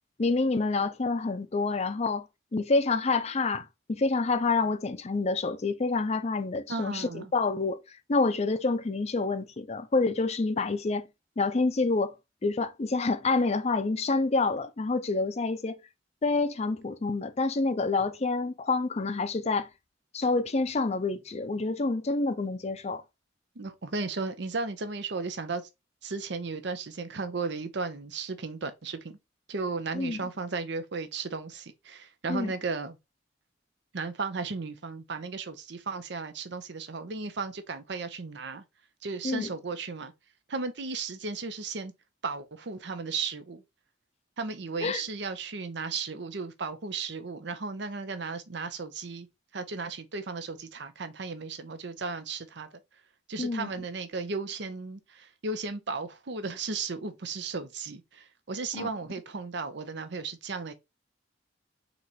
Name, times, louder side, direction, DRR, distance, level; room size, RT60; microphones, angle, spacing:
voice 1, 0.2-2.3 2.5-7.8 8.1-11.1 11.4-12.1 12.4-15.8 16.2-19.7 20.1-23.0 29.9-30.2 32.3-32.5 39.2-39.5 44.8-45.0 53.4-53.7 58.8-58.9, left 3 dB, 35° left, 0.5 m, -27 dB
voice 2, 6.7-7.3 23.6-25.6 26.0-29.2 29.5-33.0 33.9-38.6 39.0-40.1 40.5-41.9 42.2-43.6 44.4-49.3 49.5-52.7 53.3-60.7, right 4 dB, 65° right, 0.7 m, -35 dB
4.0 x 3.1 x 4.1 m
head